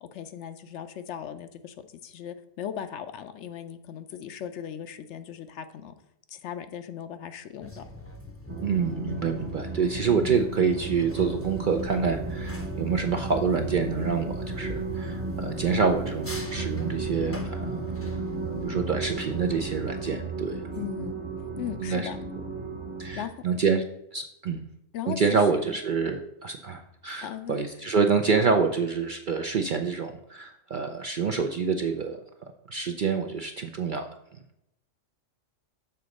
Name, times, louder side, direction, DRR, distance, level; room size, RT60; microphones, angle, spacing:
voice 1, 0.0-6.0 6.3-7.9 20.8-21.2 21.6-22.2 23.2-23.4 24.9-25.8 27.2-27.6, left 9 dB, 70° left, 10 dB, 0.8 m, -38 dB
sound 1, 7.6-20.0, left 1 dB, 15° left, 0.5 m, -42 dB
sound 2, 8.5-23.3, right 3 dB, 25° right, 1.0 m, -34 dB
voice 2, 8.6-17.9 18.5-20.6 21.8-22.1 23.0-23.8 24.1-24.6 25.1-32.2 32.7-34.1, right 5 dB, 55° right, 5 dB, 0.5 m, -27 dB
6.9 x 3.9 x 6.3 m, 0.82 s
omnidirectional pair, 1.3 m